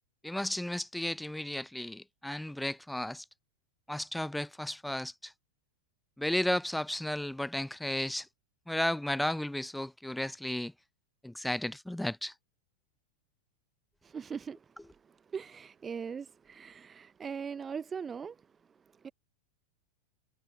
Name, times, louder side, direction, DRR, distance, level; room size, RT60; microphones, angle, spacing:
voice 1, 0.2-3.3 3.9-5.3 6.2-8.3 8.7-10.7 11.2-12.3, left 1 dB, 5° left, 0.4 m, -34 dB
voice 2, 14.0-19.1, right 6 dB, 20° right, 1.1 m, -41 dB
figure-of-eight pair, 90°, 0 cm